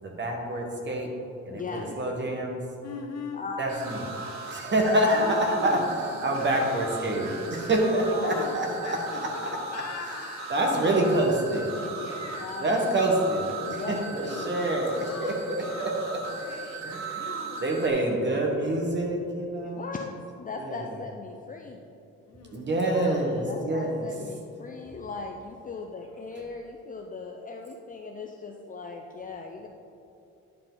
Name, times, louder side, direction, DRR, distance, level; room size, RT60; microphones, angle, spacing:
voice 1, 0.0-1.1 1.4-2.6 3.6-4.1 4.5-5.8 6.2-9.8 10.5-11.7 12.6-16.2 16.8-17.3 17.6-19.9 20.6-20.9 22.5-24.1, right 1 dB, 35° right, 1 dB, 1.4 m, -27 dB
voice 2, 1.5-2.0 3.3-3.6 4.8-5.8 6.5-6.7 8.1-8.8 10.7-11.0 11.5-12.8 13.7-14.6 19.6-20.1 20.4-21.9 23.5-29.7, left 4 dB, 30° left, 2 dB, 0.5 m, -39 dB
voice 3, 2.8-3.4 5.1-6.5 7.8-10.7 11.9-12.7 13.7-17.8 18.1-18.4 19.6-19.8 22.3-23.6, left 4 dB, 55° left, 2 dB, 1.1 m, -41 dB
sound 1, 3.7-17.9, right 4 dB, 65° right, 1.0 m, -38 dB
10.5 x 4.7 x 3.9 m, 2.7 s
cardioid pair, 90°, 30 cm